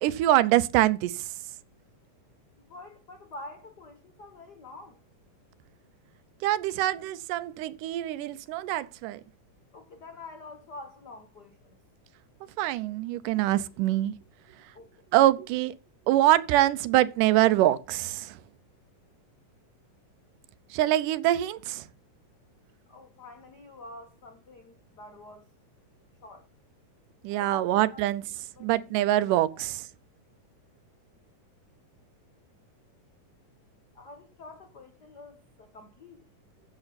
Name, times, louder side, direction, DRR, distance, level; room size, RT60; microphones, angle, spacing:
voice 1, 0.0-1.3 6.4-9.2 12.6-14.1 15.1-15.7 16.1-18.4 20.7-21.9 27.2-28.2 28.6-29.9, right 14 dB, 80° right, 2.2 m, -24 dB
voice 2, 2.6-5.0 9.7-11.8 14.7-15.0 22.9-25.5 26.2-26.5 27.3-28.1 28.5-28.7 29.1-29.2 29.5-29.6 33.9-36.2, left 2 dB, 65° left, 0.9 m, -47 dB
14.0 x 6.9 x 4.1 m
omnidirectional pair, 3.8 m